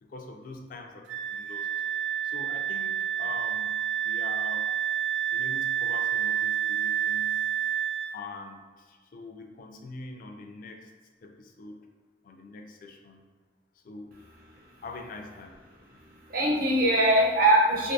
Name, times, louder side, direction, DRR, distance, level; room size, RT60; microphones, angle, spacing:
voice 1, 0.0-1.7 2.2-3.8 4.0-4.7 5.3-7.4 8.1-10.9 11.2-11.9 12.2-13.3 13.8-14.2 14.8-15.6, left 3 dB, 50° left, 4 dB, 0.3 m, -43 dB
Wind instrument woodwind instrument, 1.1-8.1, right 10 dB, 90° right, 0.4 m, -29 dB
voice 2, 15.9-17.9, right 1 dB, 55° right, -3 dB, 0.7 m, -22 dB
3.5 x 2.5 x 2.6 m, 1.5 s
head